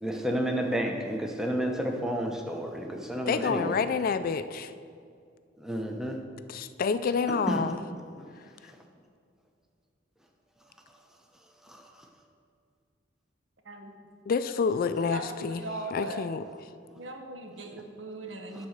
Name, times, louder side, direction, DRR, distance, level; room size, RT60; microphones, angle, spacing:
voice 1, 0.0-3.7 5.6-6.1 7.5-7.6, equal, 5° right, 2 dB, 0.8 m, -30 dB
voice 2, 3.3-4.7 6.5-7.8 14.3-16.4, left 5 dB, 50° left, 12 dB, 0.3 m, -28 dB
voice 3, 15.1-16.2 17.0-18.7, right 2 dB, 75° right, 4 dB, 1.0 m, -39 dB
11.0 x 4.1 x 6.5 m, 2.3 s
head